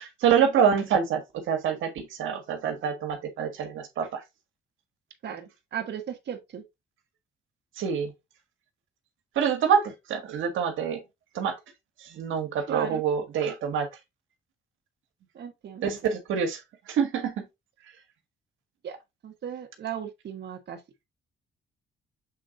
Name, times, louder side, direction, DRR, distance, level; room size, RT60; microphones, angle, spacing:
voice 1, 0.0-4.2 7.7-8.1 9.3-11.0 11.3-11.5 12.0-13.9 15.8-16.6 16.9-17.5, right 7 dB, 80° right, 1.6 m, -26 dB
voice 2, 5.2-6.6 12.7-13.0 15.3-16.0 18.8-19.0 19.2-20.8, right 9 dB, 60° right, 1.4 m, -36 dB
7.4 x 3.9 x 3.7 m
cardioid pair, 90°, 20 cm